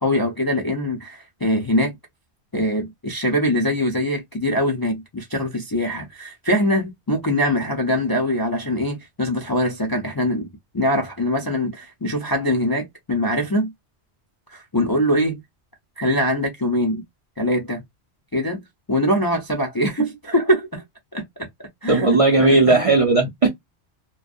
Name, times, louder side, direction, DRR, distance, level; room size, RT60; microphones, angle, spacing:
voice 1, 0.0-2.0 2.5-10.5 10.7-13.7 14.5-15.4 16.0-17.0 17.4-17.8 18.3-18.6 18.9-20.8 21.1-21.2 21.8-22.5, equal, 30° left, 0.4 m, -22 dB
voice 2, 21.9-23.5, right 3 dB, 45° right, 0.5 m, -16 dB
2.5 x 2.2 x 2.4 m
omnidirectional pair, 1.2 m